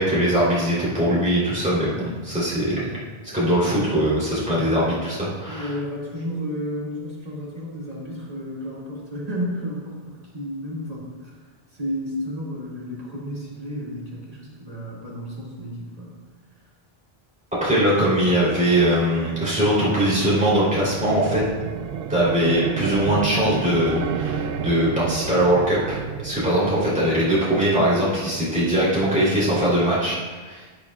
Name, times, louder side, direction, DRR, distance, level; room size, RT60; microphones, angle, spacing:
voice 1, 0.0-2.9 3.3-5.7 17.6-21.4 22.1-26.0 26.2-30.2 30.4-30.6, right 1 dB, 5° right, -9 dB, 3.3 m, -21 dB
voice 2, 5.5-11.1 11.8-16.1, equal, 40° right, -5 dB, 2.4 m, -32 dB
sound 1, 18.7-26.7, right 7 dB, 65° right, 0.8 m, -31 dB
11.0 x 11.0 x 2.4 m, 1.4 s
omnidirectional pair, 1.1 m